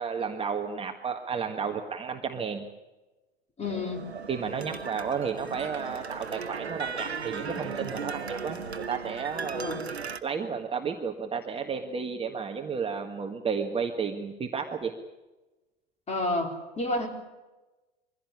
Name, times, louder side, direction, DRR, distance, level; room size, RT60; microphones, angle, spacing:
voice 1, 0.0-2.7 4.3-8.6 8.9-9.8 10.2-14.9, right 6 dB, 15° right, 4 dB, 1.6 m, -32 dB
voice 2, 3.6-4.0 9.5-9.8 16.1-17.1, left 2 dB, 20° left, 3 dB, 4.1 m, -30 dB
sound 1, 3.6-10.2, right 5 dB, 85° right, 1.2 m, -36 dB
23.5 x 16.5 x 10.0 m, 1.1 s
figure-of-eight pair, 90°, 32 cm